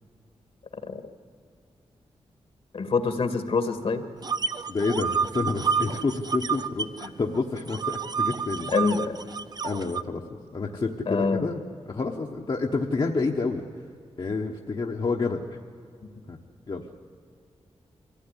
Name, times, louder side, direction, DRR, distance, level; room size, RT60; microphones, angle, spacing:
voice 1, 2.7-4.0 8.7-9.2 11.1-11.5, left 4 dB, 65° left, 8 dB, 2.0 m, -25 dB
sound 1, 4.2-7.1 7.3-10.0, right 6 dB, 35° right, 0.6 m, -29 dB
voice 2, 4.7-8.7 9.6-10.2 10.5-11.6 11.9-13.6 14.2-15.4 16.3-16.4 16.7-16.8, left 3 dB, 45° left, 1 dB, 1.2 m, -28 dB
23.5 x 15.5 x 9.9 m, 2.3 s
wide cardioid pair, 100°, 11 cm